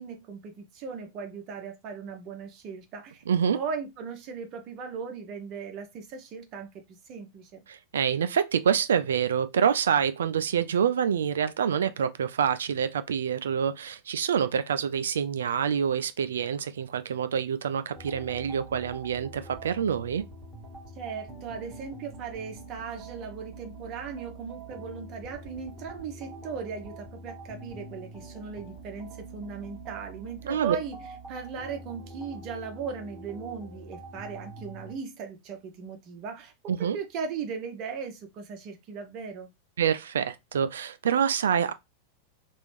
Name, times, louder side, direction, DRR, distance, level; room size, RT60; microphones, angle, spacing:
voice 1, 0.0-3.2 3.5-7.6 20.9-31.0 31.3-39.5, right 5 dB, 40° right, 0.7 m, -38 dB
voice 2, 3.3-3.6 7.7-20.2 30.5-30.8 36.7-37.0 39.8-41.7, right 8 dB, 65° right, 0.3 m, -26 dB
sound 1, 17.9-34.9, right 2 dB, 20° right, 1.2 m, -45 dB
3.0 x 2.6 x 3.3 m
figure-of-eight pair, 90°, 0 cm